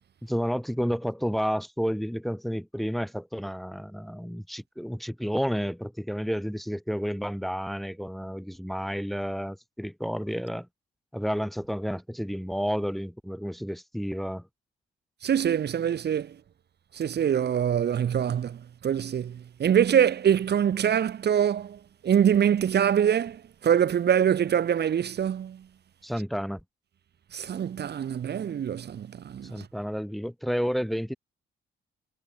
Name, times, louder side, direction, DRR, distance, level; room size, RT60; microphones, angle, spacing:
voice 1, 0.2-10.7 11.1-14.4 26.0-26.6 29.4-31.2, equal, ahead, 4.0 m, -31 dB
voice 2, 15.2-16.4 16.9-25.7 27.3-29.7, right 9 dB, 55° right, 2.4 m, -24 dB
cardioid pair, 90°, 20 cm